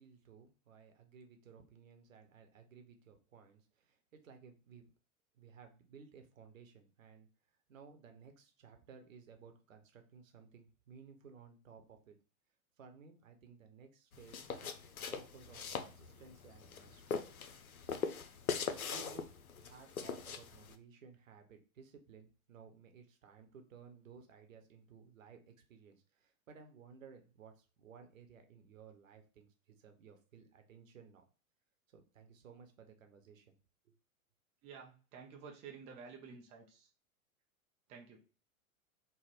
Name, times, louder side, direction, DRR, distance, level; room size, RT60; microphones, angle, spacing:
voice 1, 0.0-4.9 5.3-7.3 7.7-12.2 12.8-14.7 15.1-17.2 18.9-19.3 19.6-31.2 31.9-33.6 33.8-34.0, right 6 dB, 70° right, 5 dB, 0.8 m, -58 dB
sound 1, 14.1-20.7, left 6 dB, 85° left, 0.5 m, -42 dB
voice 2, 34.6-36.9 37.9-38.2, right 6 dB, 15° right, 0 dB, 0.4 m, -52 dB
3.4 x 2.1 x 4.0 m, 0.36 s
figure-of-eight pair, 95°, 42 cm